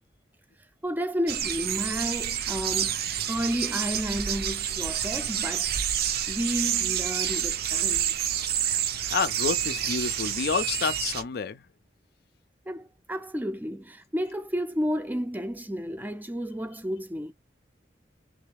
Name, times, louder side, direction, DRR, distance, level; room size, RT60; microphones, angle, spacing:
voice 1, 0.8-3.0 3.3-5.7 6.3-8.1 12.7-17.3, equal, 10° right, 0.4 m, -31 dB
sound 1, 1.3-11.2, right 10 dB, 60° right, 0.5 m, -28 dB
voice 2, 9.1-11.6, left 6 dB, 60° left, 0.4 m, -29 dB
3.2 x 3.2 x 3.4 m
head